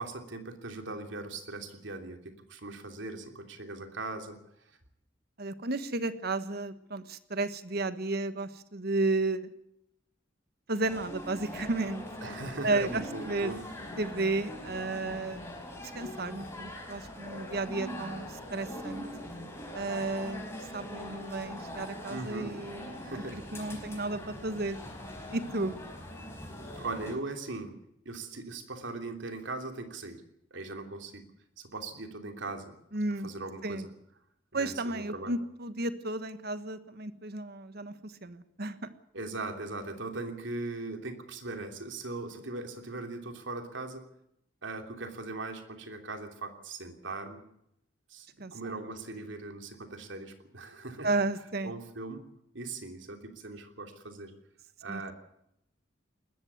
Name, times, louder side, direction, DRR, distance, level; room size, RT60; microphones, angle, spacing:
voice 1, 0.0-4.4 12.2-13.6 22.1-22.5 23.0-23.4 26.8-27.7 28.0-30.2 30.5-31.2 31.6-32.7 33.2-33.9 34.5-35.3 39.1-44.0 44.6-47.4 48.1-51.1 51.6-52.2 52.5-54.3 54.8-55.1, right 2 dB, 70° right, 6 dB, 3.1 m, -39 dB
voice 2, 5.4-9.4 10.7-12.0 12.6-13.5 14.0-15.4 15.9-19.0 19.7-20.4 20.7-24.8 25.3-25.8 32.9-33.3 33.6-33.8 34.5-38.9 48.4-48.7 51.0-51.7 54.9-55.1, right 2 dB, 55° right, 12 dB, 1.4 m, -33 dB
sound 1, 10.8-27.2, left 1 dB, 15° left, 4.6 m, -42 dB
20.0 x 14.5 x 9.5 m, 0.78 s
head